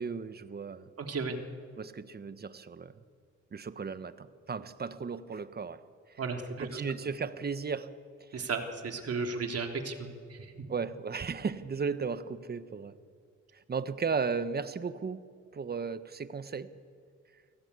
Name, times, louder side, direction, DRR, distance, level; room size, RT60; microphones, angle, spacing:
voice 1, 0.0-0.8 1.8-2.9 3.5-5.8 6.1-6.2 6.6-7.9 8.3-8.5 10.7-13.0 13.5-15.2 15.5-16.7, right 5 dB, 30° right, 13 dB, 1.3 m, -35 dB
voice 2, 1.0-1.4 6.2-6.8 8.3-10.5, right 4 dB, 55° right, 4 dB, 3.4 m, -35 dB
29.5 x 18.5 x 8.4 m, 2.1 s
cardioid pair, 90°, 30 cm